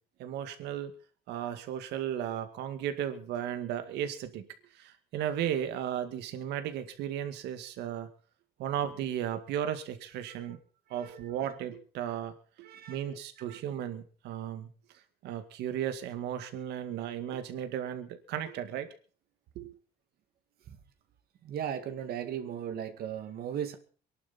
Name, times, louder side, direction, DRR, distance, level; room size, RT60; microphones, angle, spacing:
voice 1, 0.2-0.9 1.3-4.4 4.7-8.1 8.6-10.6 10.9-14.7 15.2-18.9 19.6-19.7, right 10 dB, 85° right, 9 dB, 2.1 m, -35 dB
voice 2, 10.9-11.5 12.6-13.6 20.7-20.8 21.4-23.8, right 9 dB, 65° right, 7 dB, 2.2 m, -38 dB
23.5 x 11.5 x 4.3 m, 0.41 s
cardioid pair, 110°, 17 cm